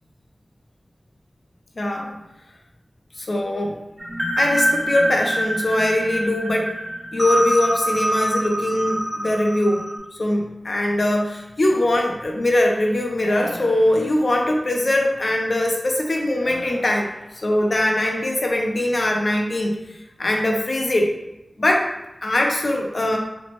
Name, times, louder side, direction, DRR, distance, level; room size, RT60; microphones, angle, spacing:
voice 1, 1.8-2.1 3.2-3.8 4.3-6.7 7.1-9.9 10.2-17.1 17.4-19.8 20.2-21.1 21.6-21.9 22.2-23.2, left 1 dB, 60° left, 1 dB, 0.4 m, -21 dB
sound 1, 4.0-10.0, right 1 dB, 30° right, 0.4 m, -25 dB
sound 2, 13.2-14.7 16.4-19.1, equal, 85° left, 0.9 m, -41 dB
3.1 x 2.0 x 2.8 m, 0.92 s
wide cardioid pair, 75°, 0 cm